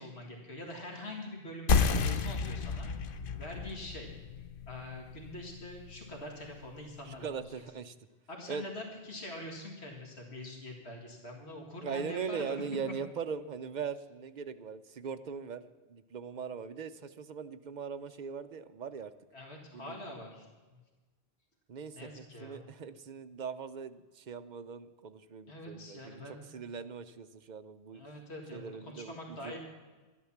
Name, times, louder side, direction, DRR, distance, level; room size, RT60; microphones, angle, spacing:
voice 1, 0.0-2.9 3.4-4.1 4.7-7.3 8.3-12.6 19.3-20.5 21.9-22.6 25.5-26.4 27.9-29.6, left 1 dB, 90° left, 1 dB, 2.3 m, -44 dB
sound 1, 1.7-6.8, left 5 dB, 60° left, 0.8 m, -32 dB
voice 2, 7.1-7.9 8.5-8.7 11.8-19.1 19.7-20.0 21.7-28.0 28.5-29.6, right 6 dB, 50° right, 11 dB, 0.7 m, -40 dB
12.0 x 11.0 x 7.2 m, 1.3 s
omnidirectional pair, 1.1 m